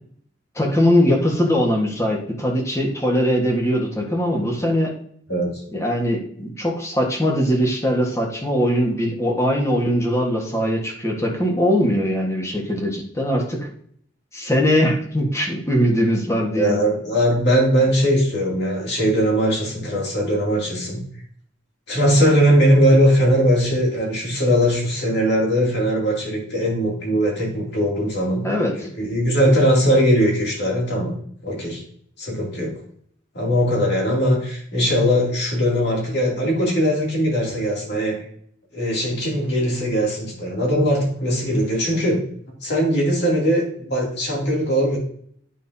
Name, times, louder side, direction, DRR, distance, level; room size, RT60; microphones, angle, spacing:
voice 1, 0.5-4.9 5.7-13.7 14.3-16.8 28.4-28.9, equal, 15° left, -1 dB, 1.4 m, -21 dB
voice 2, 5.3-5.6 16.5-21.1 21.9-28.5 29.0-31.2 31.4-31.8 32.2-32.7 33.3-38.2 38.7-42.2 42.6-45.0, equal, 65° left, -2 dB, 2.7 m, -20 dB
9.2 x 5.6 x 2.7 m, 0.63 s
head